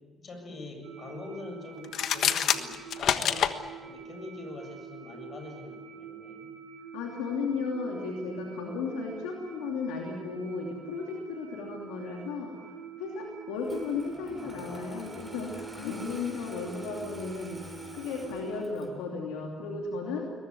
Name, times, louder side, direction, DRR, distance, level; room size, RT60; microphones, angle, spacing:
voice 1, 0.2-6.6 14.2-14.7, left 3 dB, 50° left, 6 dB, 7.6 m, -44 dB
sound 1, 0.8-18.6, right 7 dB, 75° right, 2.2 m, -46 dB
sound 2, 1.8-3.5, left 9 dB, 70° left, 1.4 m, -26 dB
voice 2, 6.9-12.7 13.0-17.6 17.9-20.3, left 4 dB, 85° left, 0 dB, 2.8 m, -35 dB
Engine starting, 13.6-19.0, right 1 dB, 10° right, 6.9 m, -48 dB
22.0 x 20.5 x 9.8 m, 1.5 s
supercardioid pair, 55°, 0 cm